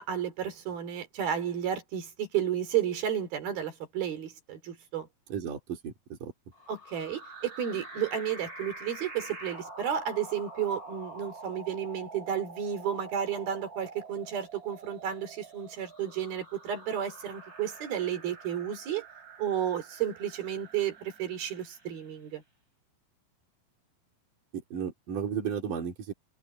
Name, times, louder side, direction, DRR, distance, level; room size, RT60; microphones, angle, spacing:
voice 1, 0.0-5.1 6.7-19.0 19.4-22.4, right 9 dB, 85° right, 5.2 m, -32 dB
voice 2, 5.3-6.3 24.7-26.1, right 7 dB, 60° right, 4.8 m, -34 dB
sound 1, 6.5-22.2, right 3 dB, 25° right, 7.2 m, -47 dB
omnidirectional pair, 4.2 m